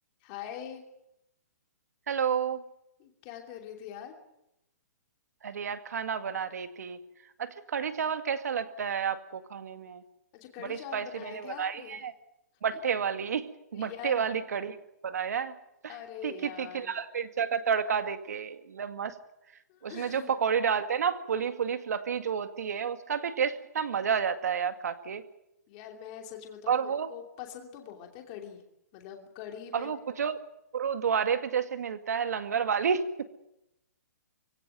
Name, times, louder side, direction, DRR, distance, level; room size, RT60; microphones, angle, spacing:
voice 1, 0.2-0.8 3.0-4.2 10.3-12.0 12.7-12.8 13.7-14.2 15.9-17.0 19.7-20.3 25.7-28.6 28.9-29.9, left 9 dB, 20° left, 3 dB, 2.8 m, -43 dB
voice 2, 2.1-2.6 5.4-7.0 7.4-10.0 10.6-12.1 12.6-14.8 15.0-15.5 15.8-15.9 16.2-19.1 19.8-25.2 26.7-27.1 29.7-30.4 30.7-33.2, right 7 dB, 65° right, 10 dB, 2.1 m, -30 dB
24.5 x 16.5 x 9.3 m, 0.84 s
hypercardioid pair, 175°, 9 cm